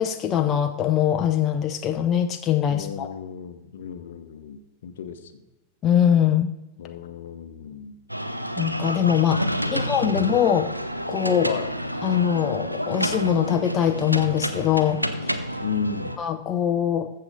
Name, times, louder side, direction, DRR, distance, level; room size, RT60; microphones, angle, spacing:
voice 1, 0.0-3.1 5.8-6.5 8.6-10.7 11.1-11.5 12.0-15.4 16.2-17.1, left 9 dB, 30° left, 6 dB, 0.7 m, -22 dB
voice 2, 2.7-5.4 6.8-7.9 9.6-10.4 11.4-11.7 15.6-16.2, left 6 dB, 60° left, 9 dB, 1.0 m, -34 dB
sound 1, 8.1-16.2, equal, 90° right, 0.7 m, -29 dB
14.5 x 6.7 x 5.1 m, 0.96 s
figure-of-eight pair, 90°, 0 cm